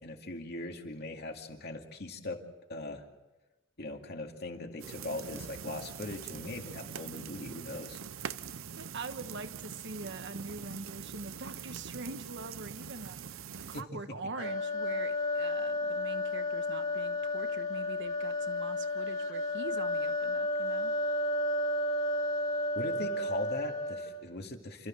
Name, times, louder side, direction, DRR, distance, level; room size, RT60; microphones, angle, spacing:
voice 1, 0.0-2.4 2.7-3.0 3.8-8.0 13.7-13.8 22.7-24.9, left 2 dB, 55° left, 3 dB, 2.4 m, -40 dB
sound 1, 4.8-13.8, right 7 dB, 80° right, 0.7 m, -43 dB
voice 2, 8.8-20.9, right 3 dB, 60° right, 9 dB, 1.3 m, -44 dB
sound 2, 14.4-24.3, left 1 dB, 80° left, 3.5 m, -32 dB
28.5 x 14.0 x 7.6 m, 1.1 s
head